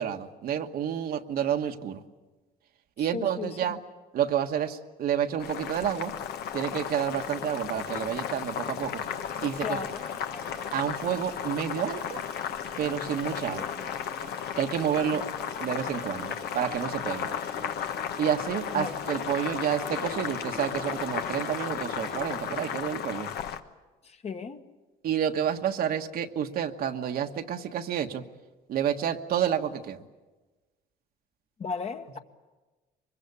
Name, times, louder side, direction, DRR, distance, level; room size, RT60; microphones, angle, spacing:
voice 1, 0.0-2.0 3.0-3.8 4.1-6.1 6.5-9.0 9.4-9.8 10.7-12.2 12.8-13.6 14.6-15.2 15.6-17.3 18.2-23.3 25.0-28.2 28.7-30.0, right 9 dB, 65° right, 5 dB, 1.4 m, -29 dB
voice 2, 3.0-3.8 9.6-10.0 10.3-10.6 13.5-13.7 15.1-15.2 18.7-18.9 24.0-24.7 31.6-32.2, left 5 dB, 40° left, 6 dB, 1.5 m, -36 dB
Boiling, 5.4-23.6, left 9 dB, 70° left, 1.3 m, -34 dB
sound 1, 9.0-22.9, right 5 dB, 80° right, 2.5 m, -48 dB
24.0 x 22.0 x 8.4 m, 1.2 s
cardioid pair, 110°, 17 cm